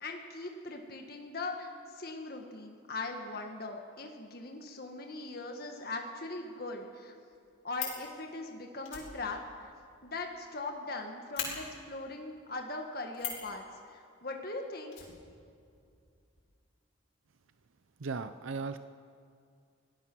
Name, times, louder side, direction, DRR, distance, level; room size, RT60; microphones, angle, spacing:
voice 1, 0.0-7.1 7.6-9.7 10.0-15.0, left 2 dB, 50° left, 2 dB, 1.7 m, -40 dB
Fire, 6.9-7.0 7.3-8.1 8.8-10.6 10.9-11.0 11.3-11.5 13.1-13.5 14.9-15.8 16.1-16.2 16.4-16.5, left 8 dB, 85° left, 6.1 m, -39 dB
voice 2, 18.0-18.8, right 4 dB, 85° right, 11 dB, 0.6 m, -36 dB
25.5 x 18.5 x 6.2 m, 2.4 s
head